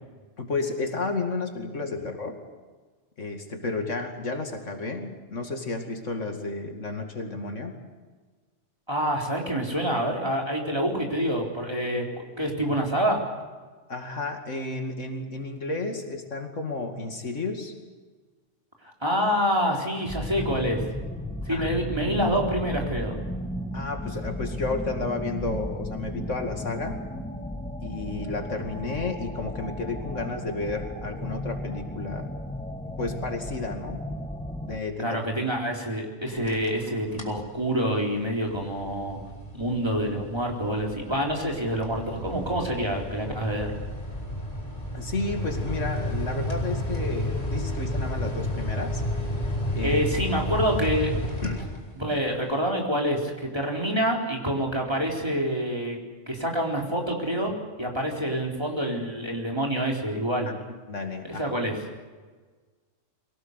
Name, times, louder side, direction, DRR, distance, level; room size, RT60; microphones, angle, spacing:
voice 1, 0.4-2.4 3.2-7.7 13.9-17.7 21.5-21.7 23.7-27.0 27.8-32.3 33.0-34.0 34.6-35.2 44.9-49.0 49.7-50.0 51.4-51.6 60.9-61.5, left 3 dB, 80° left, 4 dB, 2.7 m, -32 dB
voice 2, 8.9-12.1 12.4-13.2 19.0-20.8 21.5-23.2 35.0-39.2 39.5-43.7 49.8-51.1 52.0-56.0 56.3-60.5 61.4-61.8, equal, 20° right, 0 dB, 4.0 m, -27 dB
sound 1, 20.1-34.8, left 1 dB, 5° left, 1.2 m, -34 dB
sound 2, 36.4-36.8 37.1-37.5 37.9-52.2, equal, 30° left, 3.1 m, -32 dB
23.5 x 18.0 x 8.2 m, 1.4 s
omnidirectional pair, 1.3 m